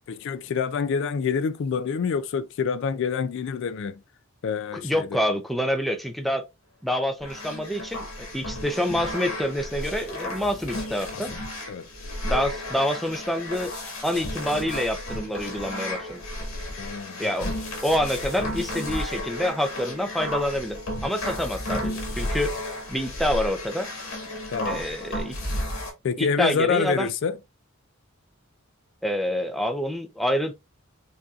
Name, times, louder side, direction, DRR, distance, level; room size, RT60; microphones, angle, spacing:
voice 1, 0.1-4.0 4.4-5.1 11.1-11.4 11.7-11.9 16.8-17.5 24.5-24.8 26.0-27.4, left 6 dB, 60° left, 0.3 m, -27 dB
voice 2, 4.7-6.4 6.8-11.3 12.2-13.7 14.0-16.2 17.2-17.5 17.8-20.8 21.0-23.9 24.6-25.4 26.2-27.1 29.0-30.5, equal, ahead, 0.5 m, -27 dB
sound 1, 7.2-25.9, left 1 dB, 80° left, 1.9 m, -33 dB
5.2 x 2.7 x 2.4 m
head